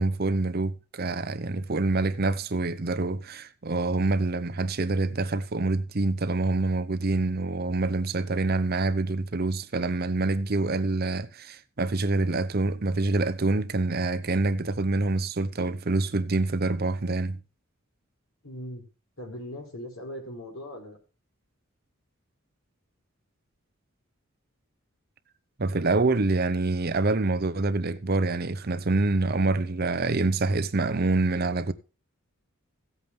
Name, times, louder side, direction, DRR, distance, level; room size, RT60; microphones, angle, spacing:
voice 1, 0.0-17.4 25.6-31.7, right 3 dB, 50° right, 0.8 m, -26 dB
voice 2, 18.4-18.9 19.2-21.0, equal, 80° left, 4.7 m, -39 dB
15.5 x 8.3 x 3.6 m
head